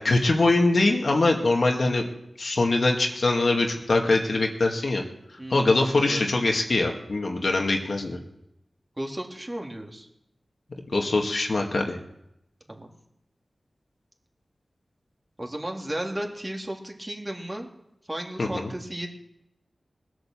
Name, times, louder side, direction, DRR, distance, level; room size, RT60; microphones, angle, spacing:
voice 1, 0.0-2.1 2.4-5.0 5.5-8.2 10.9-12.0 18.4-18.7, left 2 dB, 70° left, 2 dB, 2.0 m, -23 dB
voice 2, 5.4-6.3 9.0-10.1 12.7-12.9 15.4-17.7 18.1-19.1, right 1 dB, 25° right, 1 dB, 2.6 m, -34 dB
19.5 x 8.0 x 7.3 m, 0.82 s
wide cardioid pair, 55°, 0 cm